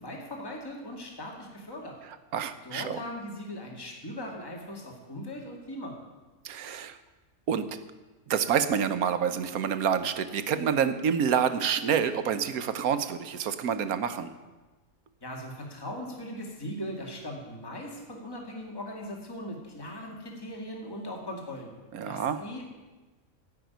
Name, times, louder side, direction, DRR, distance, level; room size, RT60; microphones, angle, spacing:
voice 1, 0.0-1.9 2.6-5.9 15.2-21.7 22.0-22.6, left 1 dB, 15° left, 0 dB, 2.2 m, -39 dB
voice 2, 2.3-3.0 6.4-7.0 7.5-7.8 8.3-14.3 21.9-22.4, right 7 dB, 80° right, 10 dB, 1.3 m, -28 dB
16.0 x 6.0 x 9.3 m, 1.2 s
omnidirectional pair, 1.5 m